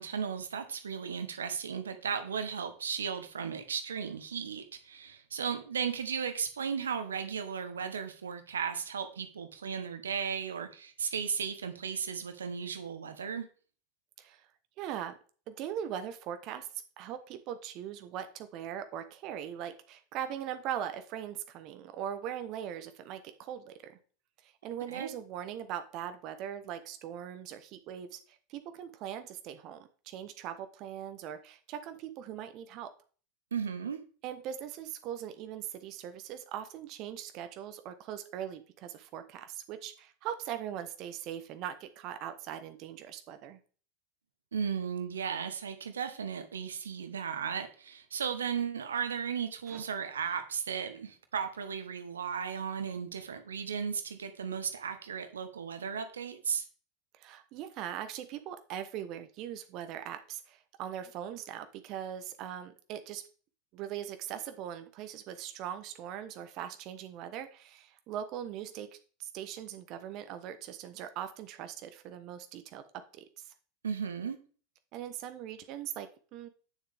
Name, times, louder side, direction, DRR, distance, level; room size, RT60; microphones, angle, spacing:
voice 1, 0.0-13.5 24.9-25.1 33.5-34.0 44.5-56.6 73.8-74.4, right 7 dB, 75° right, 1.1 m, -35 dB
voice 2, 14.2-14.5 14.8-15.1 15.5-16.7 17.0-24.0 24.4-32.9 34.2-43.6 49.7-49.8 57.1-63.2 63.7-68.9 69.2-73.5 74.9-76.5, right 10 dB, 45° right, 0.9 m, -40 dB
9.5 x 6.8 x 3.4 m
figure-of-eight pair, 80°, 0 cm